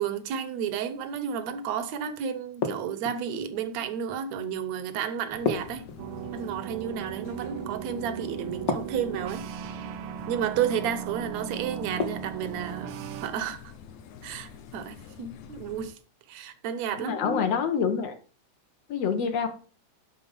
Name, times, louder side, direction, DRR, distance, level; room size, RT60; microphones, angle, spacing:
voice 1, 0.0-5.9 6.3-9.5 10.3-13.6 14.2-16.0 16.3-17.5, right 8 dB, 70° right, 2.1 m, -32 dB
sound 1, 2.6-3.4 5.5-6.5 8.7-9.4 12.0-12.6, left 4 dB, 40° left, 1.6 m, -31 dB
sound 2, 5.3-15.9, left 7 dB, 80° left, 2.3 m, -47 dB
sound 3, 6.0-13.3, right 9 dB, 90° right, 1.2 m, -37 dB
voice 2, 17.0-18.1 18.9-19.5, left 6 dB, 65° left, 2.3 m, -26 dB
11.0 x 4.3 x 6.6 m
omnidirectional pair, 3.4 m